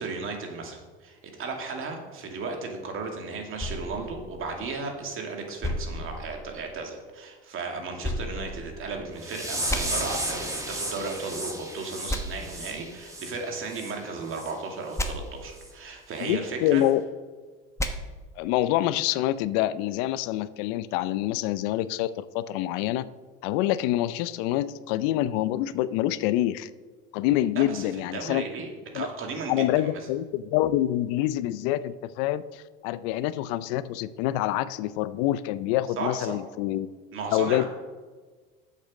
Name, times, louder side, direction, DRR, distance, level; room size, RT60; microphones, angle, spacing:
voice 1, 0.0-16.8 27.6-27.9 28.1-28.7 28.9-29.9 36.0-36.4 37.1-37.7, right 4 dB, 45° right, 2 dB, 2.4 m, -35 dB
sound 1, 3.6-5.0 5.6-6.9 8.0-9.2 9.7-9.8 12.1-12.2 15.0-15.1 17.8-17.9, left 1 dB, 10° left, 1.1 m, -33 dB
sound 2, 9.2-13.9 14.3-14.5 14.9-15.1 15.6-15.7 16.2-16.3, right 1 dB, 10° right, 2.4 m, -34 dB
voice 2, 16.2-17.0 18.4-23.0 23.4-26.7 27.1-28.4 28.9-29.1 29.5-36.9 37.3-37.6, left 14 dB, 70° left, 16 dB, 0.5 m, -26 dB
7.9 x 6.8 x 6.4 m, 1.4 s
hypercardioid pair, 90°, 29 cm